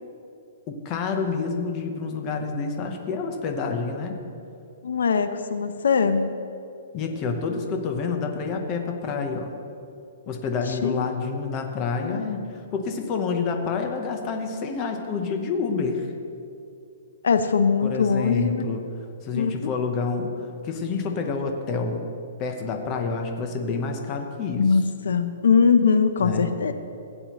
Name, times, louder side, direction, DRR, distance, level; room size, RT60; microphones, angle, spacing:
voice 1, 0.7-4.2 6.9-9.5 10.3-16.1 17.8-18.8 19.2-22.0 22.4-24.6 26.2-26.5, left 4 dB, 20° left, 4 dB, 0.8 m, -28 dB
voice 2, 4.8-6.4 10.7-11.1 12.0-12.2 17.2-18.6 19.3-19.7 24.6-26.7, left 5 dB, 90° left, 10 dB, 0.6 m, -21 dB
16.0 x 8.7 x 3.0 m, 2.6 s
hypercardioid pair, 175°, 0 cm